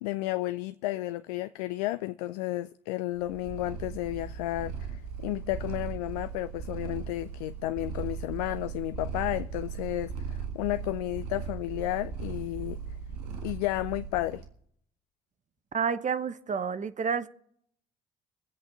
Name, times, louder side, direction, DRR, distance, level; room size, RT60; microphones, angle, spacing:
voice 1, 0.0-12.8 13.4-14.4, left 17 dB, 80° left, 0.4 m, -32 dB
Purr, 3.2-14.5, right 6 dB, 85° right, 1.7 m, -38 dB
voice 2, 15.7-17.3, right 6 dB, 40° right, 1.0 m, -29 dB
23.5 x 8.2 x 4.0 m
hypercardioid pair, 50°, 20 cm